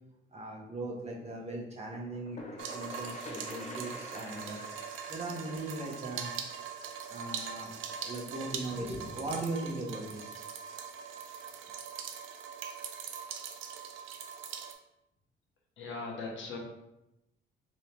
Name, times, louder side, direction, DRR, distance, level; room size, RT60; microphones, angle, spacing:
voice 1, 0.3-4.6 5.1-6.3 6.8-10.4, right 2 dB, 35° right, -2 dB, 1.0 m, -39 dB
sound 1, 1.9-7.5, left 1 dB, 35° left, 0.6 m, -48 dB
sound 2, 2.6-14.7, right 7 dB, 80° right, 0.4 m, -42 dB
voice 2, 15.8-16.6, left 3 dB, 70° left, 0 dB, 0.9 m, -39 dB
3.0 x 2.7 x 3.3 m, 0.89 s
cardioid pair, 90°, 20 cm